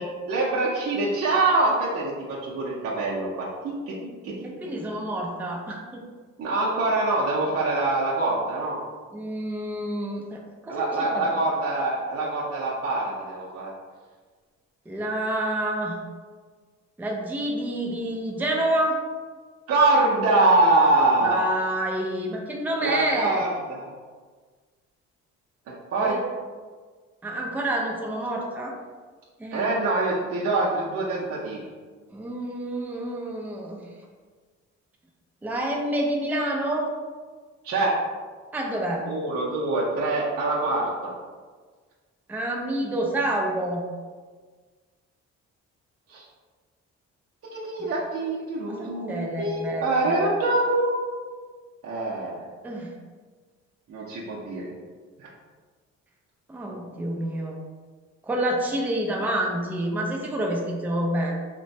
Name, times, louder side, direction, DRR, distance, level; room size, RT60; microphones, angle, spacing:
voice 1, 0.0-3.9 4.2-4.3 6.4-8.8 10.7-13.7 19.7-21.5 22.8-23.9 25.7-26.1 29.5-31.6 37.6-38.0 39.0-41.1 46.1-46.2 47.4-51.1 51.8-52.4 53.9-54.7 55.2-55.3, right 2 dB, 50° right, -6 dB, 0.6 m, -24 dB
voice 2, 4.4-6.0 9.1-10.8 11.1-11.3 14.9-16.0 17.0-19.0 21.2-23.4 26.0-26.2 27.2-28.7 29.4-29.7 32.1-33.8 35.4-36.9 38.5-39.0 42.3-43.8 47.8-47.9 48.7-50.2 52.6-52.9 56.5-57.6 58.2-61.4, right 1 dB, 5° right, -1 dB, 0.4 m, -28 dB
2.9 x 2.2 x 2.6 m, 1.5 s
cardioid pair, 90°, 30 cm